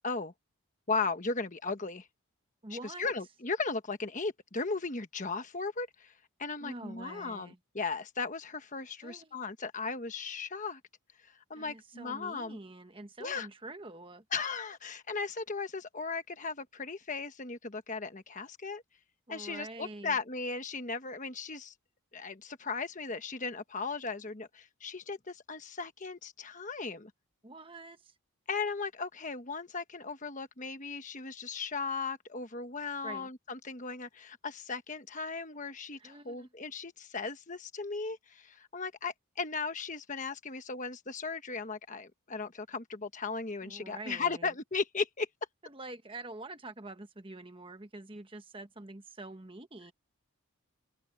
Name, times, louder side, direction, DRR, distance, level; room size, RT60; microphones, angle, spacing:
voice 1, 0.9-2.1 3.0-6.1 6.4-10.8 11.2-12.6 13.2-13.5 14.3-18.8 19.3-21.7 22.1-27.1 28.5-45.3, left 4 dB, 35° left, 1.2 m, -37 dB
voice 2, 2.6-3.1 6.6-7.6 9.0-9.5 11.5-14.2 19.3-20.2 27.4-28.2 33.0-33.3 36.0-36.5 43.6-44.5 45.6-49.9, right 2 dB, 25° right, 1.3 m, -46 dB
open air
head